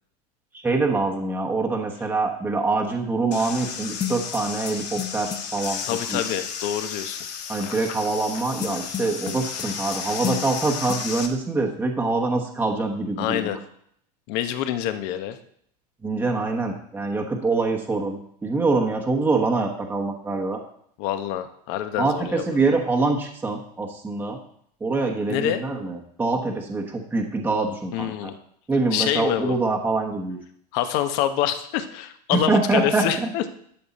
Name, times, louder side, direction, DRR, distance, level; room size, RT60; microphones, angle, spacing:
voice 1, 0.6-6.2 7.5-13.6 16.0-20.6 22.0-24.4 24.8-28.3 28.7-30.4 32.3-33.3, right 3 dB, 10° right, 1 dB, 1.1 m, -25 dB
sound 1, 3.3-11.3, left 7 dB, 80° left, 1.5 m, -33 dB
sound 2, 4.0-5.7 8.6-10.0 10.2-10.6 10.9-11.0, left 10 dB, 20° left, 0.7 m, -31 dB
voice 2, 5.9-7.2 13.2-13.6 14.3-15.4 21.0-22.6 25.3-25.6 27.9-28.3 28.9-29.6 30.7-33.4, left 11 dB, 50° left, 9 dB, 1.0 m, -26 dB
12.0 x 6.6 x 4.2 m, 0.67 s
supercardioid pair, 140°, 21 cm